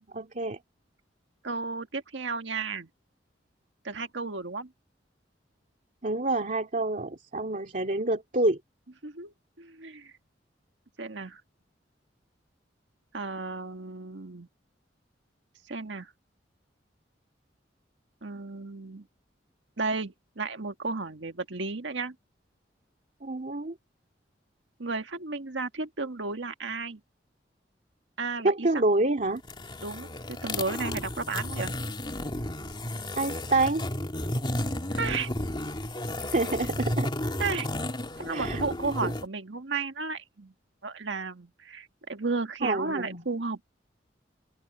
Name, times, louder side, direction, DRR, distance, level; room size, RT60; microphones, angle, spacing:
voice 1, 0.1-0.6 6.0-8.6 23.2-23.8 28.4-29.4 33.2-33.8 36.3-37.1 38.3-38.6 39.0-39.1 42.6-43.2, right 2 dB, 45° right, 2.4 m, -27 dB
voice 2, 1.4-2.9 3.8-4.7 9.0-10.1 11.0-11.4 13.1-14.5 15.7-16.1 18.2-19.1 19.8-22.1 24.8-27.0 28.2-28.8 29.8-31.7 34.9-35.3 37.4-37.7 38.2-40.5 40.8-43.6, right 4 dB, 85° right, 1.7 m, -33 dB
sound 1, 29.4-39.3, left 1 dB, 25° left, 2.4 m, -33 dB
open air
head